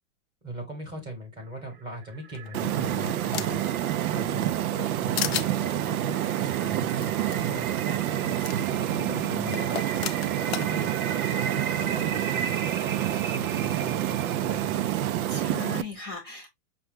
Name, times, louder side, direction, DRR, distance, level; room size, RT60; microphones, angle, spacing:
voice 1, 0.4-3.6 4.1-9.8 10.4-12.4 12.8-14.8, equal, 10° right, 1.0 m, -40 dB
sound 1, 1.6-15.0, right 6 dB, 40° right, 0.4 m, -38 dB
sound 2, 2.3-3.7 4.2-4.9 5.2-5.5 7.0-7.1 7.3-7.4 8.4-8.6 9.5-10.7, left 11 dB, 50° left, 0.5 m, -33 dB
sound 3, 2.5-15.8, right 12 dB, 80° right, 0.6 m, -28 dB
voice 2, 9.0-9.6 15.3-16.5, left 4 dB, 10° left, 0.7 m, -38 dB
5.9 x 2.3 x 3.5 m
supercardioid pair, 175°, 42 cm